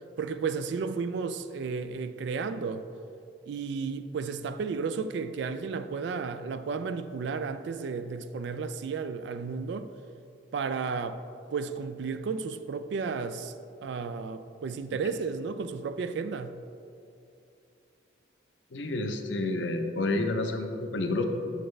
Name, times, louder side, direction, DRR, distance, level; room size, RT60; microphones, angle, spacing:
voice 1, 0.2-2.8 3.5-9.9 10.5-11.2 11.5-13.5 13.8-16.6, right 5 dB, 65° right, 0.3 m, -33 dB
voice 2, 18.7-21.2, left 2 dB, 75° left, 0.6 m, -29 dB
7.8 x 6.5 x 3.2 m
head